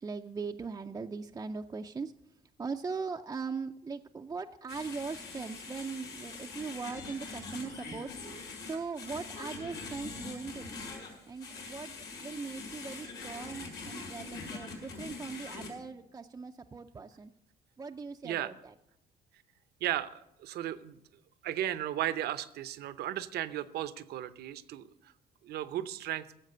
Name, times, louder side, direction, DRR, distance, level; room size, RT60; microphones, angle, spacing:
voice 1, 0.0-2.1 2.6-8.1 8.6-10.8 11.3-11.9 12.2-17.3 17.8-18.7, right 4 dB, 20° right, 4 dB, 0.5 m, -40 dB
sound 1, 4.7-15.7, left 4 dB, 90° left, 5.1 m, -43 dB
voice 2, 19.8-21.0 21.4-25.1 25.4-26.3, right 12 dB, 70° right, 14 dB, 0.7 m, -35 dB
15.5 x 7.5 x 6.7 m, 0.85 s
cardioid pair, 110°, 17 cm